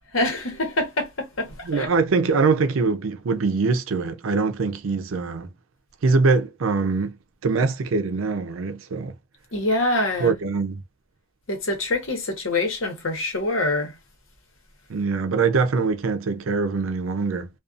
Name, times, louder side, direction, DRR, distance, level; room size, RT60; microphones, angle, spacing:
voice 1, 0.1-1.9 9.5-10.4 11.5-13.9, left 2 dB, 90° left, 1.1 m, -25 dB
voice 2, 1.6-5.5 6.0-7.1 7.4-9.1 10.2-10.8 14.9-17.5, right 4 dB, 85° right, 0.5 m, -23 dB
2.4 x 2.4 x 2.5 m
head